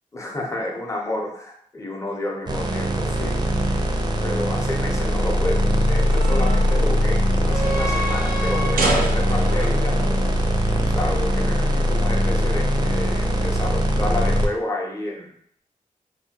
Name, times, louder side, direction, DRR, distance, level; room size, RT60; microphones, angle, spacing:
voice 1, 0.1-3.4 4.2-10.0 10.9-15.3, left 1 dB, 20° left, -1 dB, 0.6 m, -30 dB
sound 1, 2.5-14.5, equal, 30° right, 0.5 m, -21 dB
sound 2, 5.8-11.4, right 2 dB, 90° right, 0.5 m, -30 dB
2.7 x 2.2 x 2.8 m, 0.68 s
cardioid pair, 80°, 14 cm